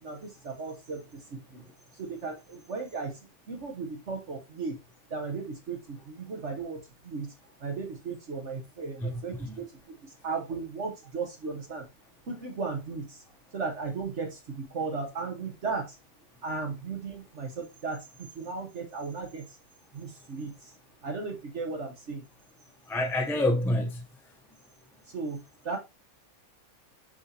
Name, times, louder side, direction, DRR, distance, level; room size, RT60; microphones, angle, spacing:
voice 1, 0.0-1.6 1.9-4.8 5.1-7.3 7.6-11.9 12.3-13.2 13.5-16.0 16.4-19.6 19.9-20.8 21.0-22.2 25.1-25.8, right 4 dB, 55° right, 1.3 m, -36 dB
voice 2, 9.0-9.6 22.9-24.0, left 1 dB, 5° left, 0.3 m, -28 dB
7.1 x 5.0 x 2.8 m
omnidirectional pair, 1.6 m